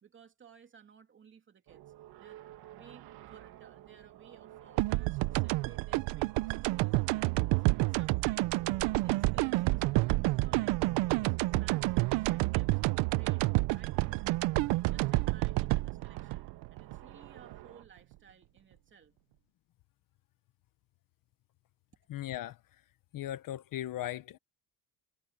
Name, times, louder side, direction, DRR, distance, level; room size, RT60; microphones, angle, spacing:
voice 1, 0.0-1.8 2.2-2.4 2.7-7.6 7.9-8.6 8.9-12.8 13.1-13.5 13.7-14.2 14.5-19.1, right 7 dB, 25° right, 2.8 m, -57 dB
sound 1, 1.7-17.8, right 13 dB, 60° right, 2.0 m, -53 dB
sound 2, 4.8-17.6, right 21 dB, 85° right, 0.7 m, -29 dB
voice 2, 22.1-22.6 23.1-24.4, left 13 dB, 50° left, 1.0 m, -37 dB
cardioid pair, 170°, 42 cm